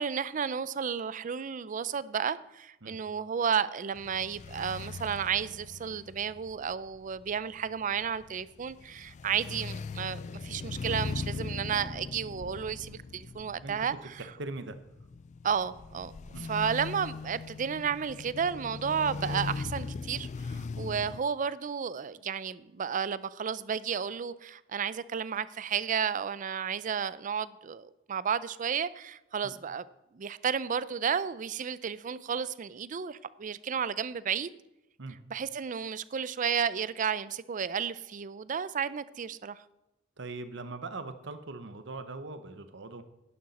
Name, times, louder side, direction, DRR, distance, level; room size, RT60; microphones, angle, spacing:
voice 1, 0.0-14.2 15.4-16.1 16.4-29.8 30.1-34.5 35.3-39.6, right 7 dB, 40° right, 0.4 m, -32 dB
sound 1, 4.0-21.2, left 4 dB, 40° left, 0.3 m, -40 dB
voice 2, 14.2-14.8 16.3-16.5 29.4-29.6 35.0-35.2 40.2-43.0, right 3 dB, 65° right, 0.9 m, -41 dB
11.0 x 10.5 x 4.2 m
head